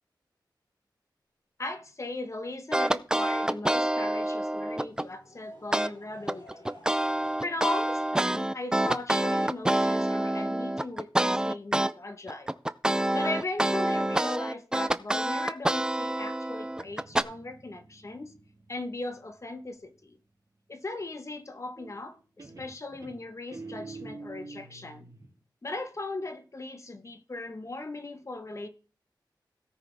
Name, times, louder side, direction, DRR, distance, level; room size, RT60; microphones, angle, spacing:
voice 1, 1.6-6.8 7.4-12.6 13.1-18.3 18.7-20.2 20.7-25.1 25.6-28.7, left 2 dB, 40° left, 1.2 m, -38 dB
sound 1, 2.7-5.1 5.7-5.9 6.3-11.9 12.3-17.2, right 1 dB, 10° right, 0.4 m, -27 dB
Laughter / Crowd, 4.7-10.5, left 1 dB, 80° left, 6.1 m, -55 dB
Guitar, 16.6-20.2 21.8-22.1 22.4-25.3, right 3 dB, 50° right, 3.0 m, -47 dB
17.0 x 5.8 x 3.5 m
wide cardioid pair, 85°, 8 cm